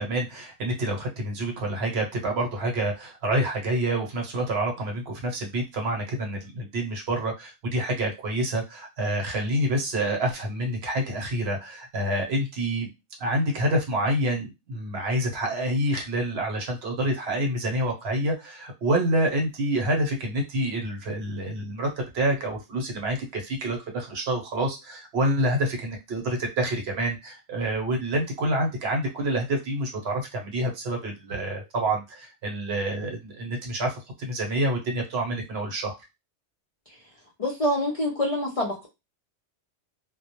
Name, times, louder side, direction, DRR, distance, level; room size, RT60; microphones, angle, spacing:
voice 1, 0.0-12.9 13.2-21.9 22.1-36.0, right 1 dB, 65° right, 2 dB, 1.0 m, -27 dB
voice 2, 37.4-38.9, left 1 dB, 50° left, -2 dB, 0.4 m, -26 dB
2.1 x 2.1 x 2.8 m, 0.23 s
omnidirectional pair, 1.2 m